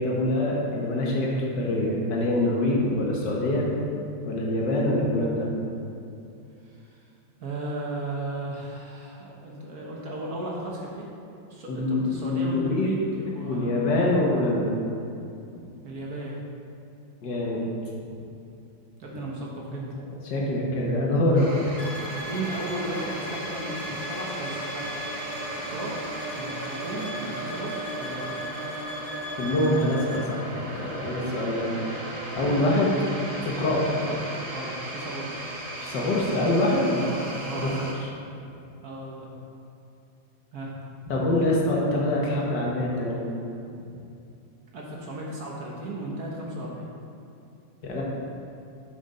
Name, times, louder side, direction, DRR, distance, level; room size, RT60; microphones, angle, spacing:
voice 1, 0.0-3.7 4.3-5.5 11.7-12.9 13.4-14.8 17.2-17.6 20.3-21.5 29.4-31.7 32.4-32.9 33.4-33.9 35.8-36.9 37.6-37.7 41.1-43.2 47.8-48.0, left 1 dB, 65° left, -3 dB, 1.7 m, -25 dB
voice 2, 6.7-7.0 7.4-11.1 11.5-14.1 15.8-16.4 19.0-20.0 22.3-25.0 25.5-25.9 26.3-28.4 31.6-31.9 32.4-32.6 34.0-34.2 34.5-35.5 36.9-37.7 38.8-39.3 40.5-40.7 44.7-46.9, right 2 dB, 55° right, -3 dB, 1.3 m, -35 dB
sound 1, 21.3-37.9, right 1 dB, 30° right, 0.7 m, -36 dB
sound 2, 21.8-30.3, left 1 dB, 80° left, 0.4 m, -40 dB
7.2 x 6.6 x 4.2 m, 2.6 s
omnidirectional pair, 2.2 m